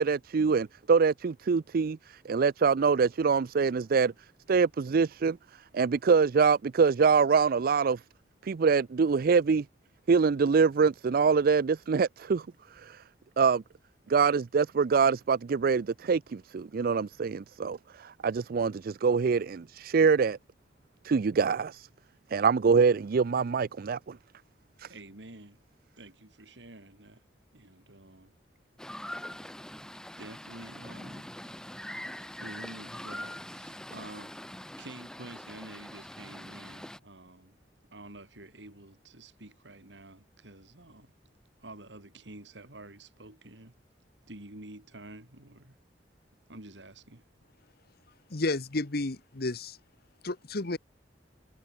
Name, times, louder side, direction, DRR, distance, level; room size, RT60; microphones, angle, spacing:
voice 1, 0.0-4.1 4.5-5.4 5.7-8.0 8.4-9.6 10.1-12.4 12.8-13.0 13.4-13.6 14.1-20.4 21.0-21.9 22.3-24.2 24.8-24.9, right 5 dB, 55° right, 0.4 m, -25 dB
voice 2, 24.9-25.6 26.0-27.2 27.5-28.3 30.2-31.4 32.4-34.4 34.8-37.6 37.9-41.1 41.6-43.8 44.3-45.8 46.5-47.2, right 2 dB, 85° right, 4.2 m, -48 dB
sound 1, 28.8-37.0, left 1 dB, 5° left, 0.8 m, -43 dB
voice 3, 48.3-49.8 50.2-50.8, left 2 dB, 60° left, 1.3 m, -31 dB
head